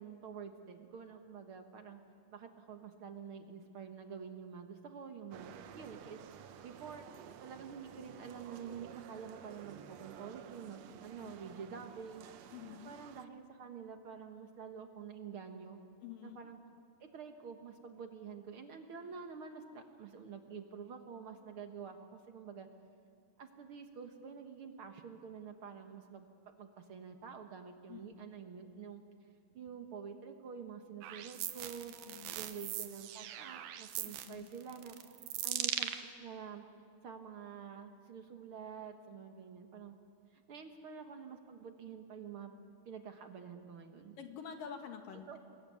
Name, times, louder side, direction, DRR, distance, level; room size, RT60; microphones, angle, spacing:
voice 1, 0.0-2.0 2.3-6.2 6.6-7.1 7.4-12.3 12.7-15.8 16.2-16.6 17.0-22.7 23.4-26.3 26.6-29.0 29.5-31.9 32.3-35.0 35.4-36.7 37.0-40.0 40.3-42.5 42.8-44.2 45.3-45.4, right 6 dB, 55° right, 6 dB, 1.5 m, -48 dB
sound 1, 5.3-13.2, right 9 dB, 75° right, 1.6 m, -53 dB
voice 2, 12.5-13.0 16.0-16.4 27.9-28.0 32.1-32.4 34.0-34.5 44.2-45.4, left 7 dB, 70° left, 5 dB, 3.6 m, -48 dB
sound 2, 31.0-36.0, right 11 dB, 90° right, 2.9 m, -40 dB
27.5 x 22.0 x 9.4 m, 2.3 s
omnidirectional pair, 4.2 m